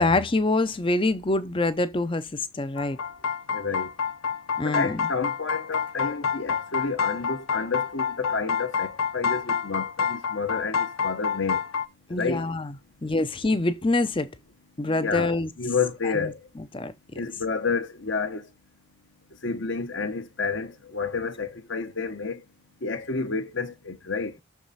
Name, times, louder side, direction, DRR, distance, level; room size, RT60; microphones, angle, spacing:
voice 1, 0.0-3.0 4.6-5.0 12.1-12.7 13.0-14.3 14.8-15.5 16.0-16.3 16.7-16.9, left 2 dB, 25° left, 0.5 m, -25 dB
sound 1, 2.8-11.9, left 6 dB, 80° left, 0.7 m, -28 dB
voice 2, 3.5-3.9 4.6-11.6 12.1-12.5 14.8-16.4 17.1-18.5 19.4-22.4 22.8-24.4, left 4 dB, 55° left, 0.9 m, -30 dB
6.5 x 4.7 x 4.0 m
head